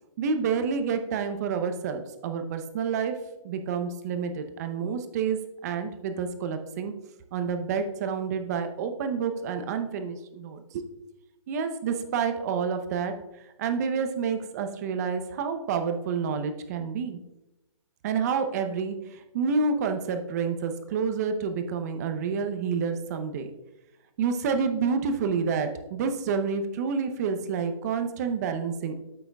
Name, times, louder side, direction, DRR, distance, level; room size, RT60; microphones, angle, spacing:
voice 1, 0.2-3.1 3.4-6.9 7.3-10.8 11.5-13.1 13.6-17.2 18.0-23.5 24.2-29.0, right 5 dB, 30° right, 7 dB, 0.7 m, -29 dB
8.7 x 7.7 x 2.3 m, 0.96 s
hypercardioid pair, 150°, 17 cm